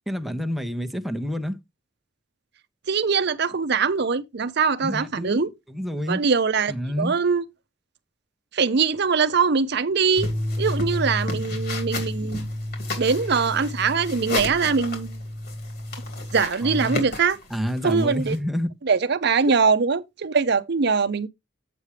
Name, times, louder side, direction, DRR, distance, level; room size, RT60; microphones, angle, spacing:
voice 1, 0.1-1.6 4.8-6.2 6.7-7.1 16.6-17.1 17.5-18.7, equal, ahead, 0.8 m, -28 dB
voice 2, 2.9-5.5 6.1-7.4 8.5-10.3 10.6-12.5 13.0-15.2 16.3-17.4 17.8-18.4 18.9-21.3, right 5 dB, 60° right, 0.7 m, -22 dB
sound 1, 10.1-18.4, left 3 dB, 55° left, 3.5 m, -35 dB
sound 2, 10.2-16.4, left 1 dB, 20° left, 1.2 m, -31 dB
8.4 x 7.0 x 3.3 m
head